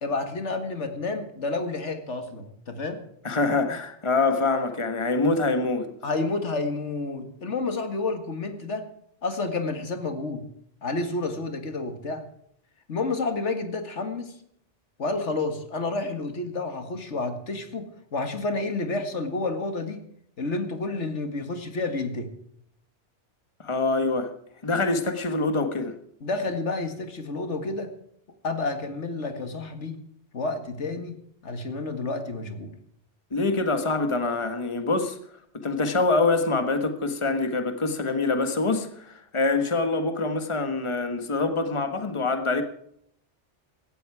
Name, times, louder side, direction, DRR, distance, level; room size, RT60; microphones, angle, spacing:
voice 1, 0.0-3.0 6.0-8.8 9.2-10.4 10.8-12.2 12.9-14.3 15.0-17.9 18.1-20.0 20.4-22.3 26.2-27.9 28.4-30.0 30.3-31.2 31.4-32.7, left 3 dB, 80° left, 2.1 m, -30 dB
voice 2, 3.2-5.9 23.6-24.3 24.6-25.9 33.3-35.2 35.5-42.6, left 3 dB, 25° left, 1.5 m, -25 dB
17.0 x 13.5 x 4.8 m
omnidirectional pair, 1.2 m